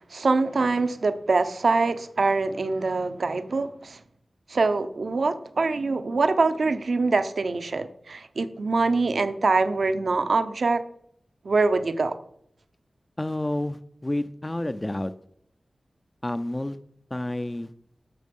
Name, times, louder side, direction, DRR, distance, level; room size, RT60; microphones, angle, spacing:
voice 1, 0.1-4.0 4.5-10.8 11.4-12.1, right 3 dB, 75° right, 9 dB, 0.8 m, -24 dB
voice 2, 13.2-15.1 16.2-16.8 17.1-17.7, left 1 dB, 20° left, 10 dB, 0.5 m, -29 dB
12.5 x 6.5 x 5.4 m, 0.70 s
wide cardioid pair, 75°, 0 cm